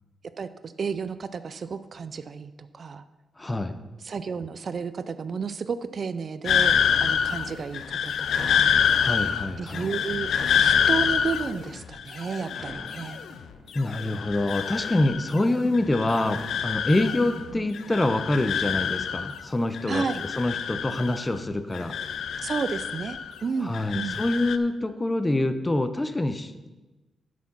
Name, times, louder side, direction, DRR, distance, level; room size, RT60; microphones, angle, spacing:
voice 1, 0.4-3.0 4.0-8.7 9.6-13.2 15.6-15.8 17.5-17.7 19.9-20.2 22.4-24.2, right 5 dB, 45° right, 13 dB, 0.4 m, -32 dB
voice 2, 3.4-3.7 9.0-9.9 13.7-20.1 20.4-21.9 23.6-26.7, left 2 dB, 15° left, 10 dB, 0.5 m, -26 dB
sound 1, 6.4-13.4 13.7-15.4 15.7-17.5 17.7-19.4 19.7-21.4 21.7-23.4 23.7-24.6, left 7 dB, 75° left, 0.5 m, -26 dB
sound 2, 9.7-11.6 12.5-14.5, equal, 35° left, 3.1 m, -48 dB
9.1 x 6.3 x 5.9 m, 1.1 s
wide cardioid pair, 150°, 0 cm